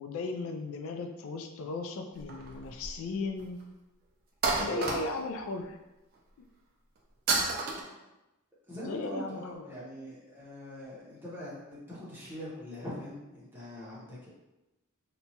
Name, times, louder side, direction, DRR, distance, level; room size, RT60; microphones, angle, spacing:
voice 1, 0.0-3.6 4.6-5.8 8.8-9.5, left 3 dB, 70° left, 5 dB, 0.3 m, -36 dB
sound 1, 2.2-3.1 3.4-3.5 4.4-5.4 7.3-7.8, right 3 dB, 45° right, 0.4 m, -30 dB
voice 2, 4.6-4.9 8.7-14.3, left 1 dB, 10° right, -9 dB, 0.7 m, -43 dB
2.8 x 2.2 x 2.7 m, 1.0 s
head